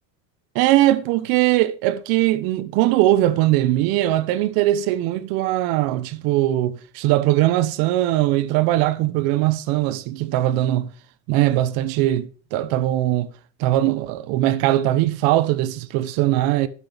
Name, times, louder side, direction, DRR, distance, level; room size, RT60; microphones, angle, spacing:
voice 1, 0.5-10.9 11.3-13.3 13.6-16.7, right 15 dB, 65° right, 1.0 m, -20 dB
12.0 x 6.3 x 5.1 m
cardioid pair, 140°, 38 cm